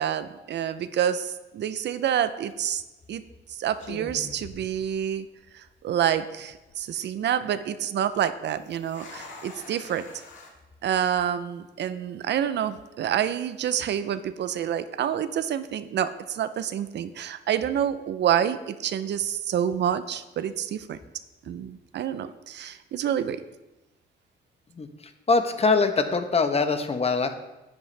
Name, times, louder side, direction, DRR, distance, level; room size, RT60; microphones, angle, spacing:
voice 1, 0.0-2.8 3.1-3.2 3.5-5.3 5.5-10.1 10.8-21.0 21.5-23.4, right 9 dB, 60° right, 12 dB, 0.5 m, -28 dB
sound 1, 2.3-2.5 3.3-3.5 3.8-5.4 5.7-5.8 6.4-6.8 8.5-10.5, left 3 dB, 70° left, 1.9 m, -44 dB
voice 2, 25.3-27.3, left 4 dB, 30° left, 8 dB, 0.9 m, -23 dB
10.5 x 8.0 x 3.3 m, 1.0 s
cardioid pair, 90°, 20 cm